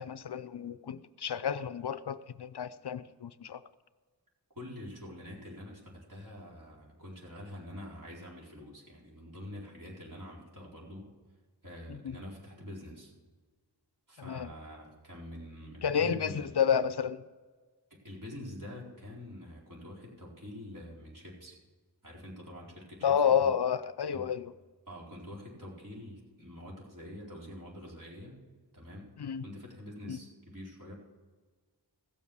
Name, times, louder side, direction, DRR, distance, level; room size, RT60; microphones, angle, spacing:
voice 1, 0.0-3.6 11.9-12.2 14.2-14.5 15.8-17.2 23.0-24.5 29.2-29.5 30.1-30.2, left 7 dB, 70° left, 14 dB, 0.6 m, -30 dB
voice 2, 4.5-11.1 11.6-13.1 14.1-16.6 17.9-21.6 22.0-23.5 24.1-24.2 24.9-28.4 28.7-29.1 29.4-30.9, left 1 dB, 50° right, -5 dB, 4.3 m, -46 dB
16.0 x 7.3 x 6.2 m, 1.4 s
wide cardioid pair, 65°, 41 cm